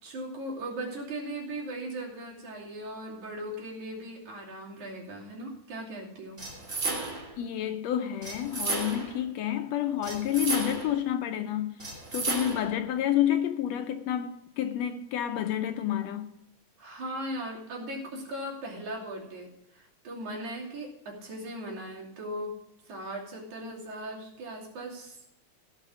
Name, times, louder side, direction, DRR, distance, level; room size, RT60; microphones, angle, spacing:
voice 1, 0.0-6.4 16.8-22.6 22.9-25.2, right 1 dB, 75° right, 4.1 m, -38 dB
sound 1, 6.4-7.4 8.2-9.2 10.0-11.0 11.8-12.8, right 3 dB, 25° right, 2.4 m, -33 dB
voice 2, 7.4-11.8 12.1-16.3, left 11 dB, 75° left, 1.7 m, -29 dB
16.5 x 5.8 x 6.1 m
omnidirectional pair, 3.4 m